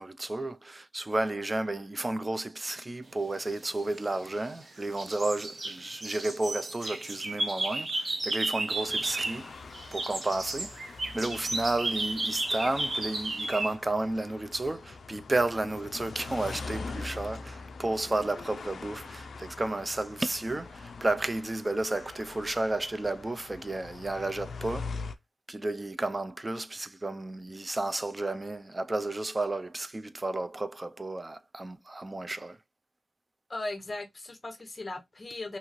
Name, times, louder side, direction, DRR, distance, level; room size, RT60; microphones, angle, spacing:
voice 1, 0.0-9.5 9.9-25.0 25.5-32.6, right 2 dB, 20° right, 0.3 m, -32 dB
sound 1, 3.8-4.6 5.0-9.5 9.7-13.7, right 2 dB, 45° right, 0.7 m, -33 dB
sound 2, 8.7-25.1, left 4 dB, 70° left, 0.3 m, -43 dB
voice 2, 33.5-35.6, left 2 dB, 25° left, 0.7 m, -38 dB
3.0 x 2.7 x 2.4 m
wide cardioid pair, 130°, 0 cm